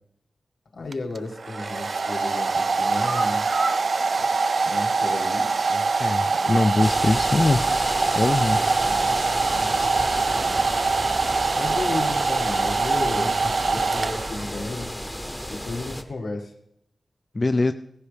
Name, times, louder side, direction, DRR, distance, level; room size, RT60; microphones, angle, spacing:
voice 1, 0.7-3.5 4.6-5.9 6.2-6.9 8.8-9.2 9.5-10.6 11.5-13.4 13.6-14.9 15.5-16.5, left 2 dB, 75° left, 0 dB, 1.8 m, -34 dB
Domestic sounds home sounds, 0.9-14.6, right 4 dB, 55° right, 0.4 m, -24 dB
sound 1, 1.2-1.5 1.9-5.3 5.6-5.7 6.1-6.2, right 3 dB, 85° right, 1.0 m, -36 dB
voice 2, 6.0-7.6 8.1-8.6 13.2-13.3 17.3-17.7, left 2 dB, 30° left, 8 dB, 0.4 m, -22 dB
sound 2, 6.8-16.0, equal, 5° left, 0.8 m, -32 dB
16.5 x 15.5 x 3.4 m, 0.78 s
wide cardioid pair, 130°, 0 cm